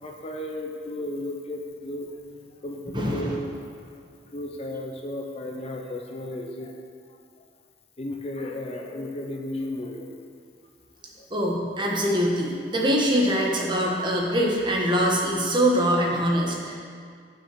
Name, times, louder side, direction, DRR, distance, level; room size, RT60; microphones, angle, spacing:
voice 1, 0.0-3.5 4.3-6.7 8.0-10.2 11.2-11.3, left 1 dB, 35° left, 1 dB, 0.8 m, -34 dB
voice 2, 2.9-3.4 11.3-16.8, equal, 25° right, -2 dB, 1.5 m, -23 dB
9.6 x 6.4 x 6.3 m, 2.1 s
head